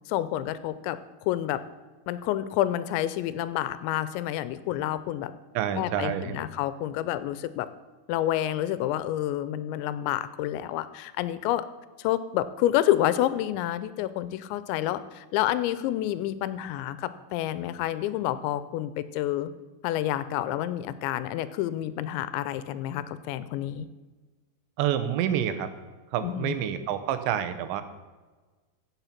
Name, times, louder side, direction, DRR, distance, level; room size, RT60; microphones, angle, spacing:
voice 1, 0.1-1.0 1.3-1.6 2.1-5.3 5.7-7.7 8.1-11.7 12.0-19.5 19.8-23.9 26.2-26.6, left 13 dB, 90° left, 14 dB, 3.0 m, -29 dB
voice 2, 5.5-6.4 24.8-25.7 26.1-27.8, right 10 dB, 85° right, 10 dB, 3.2 m, -28 dB
16.0 x 7.5 x 5.9 m, 1.3 s
omnidirectional pair, 5.1 m